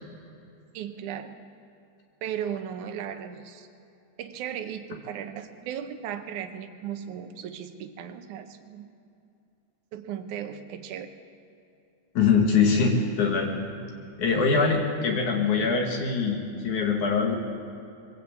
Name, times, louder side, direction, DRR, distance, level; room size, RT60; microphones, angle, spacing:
voice 1, 0.7-1.3 2.2-3.7 4.2-9.0 9.9-11.1, right 9 dB, 75° right, 7 dB, 2.4 m, -36 dB
voice 2, 12.1-13.5 14.2-17.4, left 5 dB, 70° left, 1 dB, 3.3 m, -23 dB
23.0 x 15.5 x 8.4 m, 2.6 s
omnidirectional pair, 3.6 m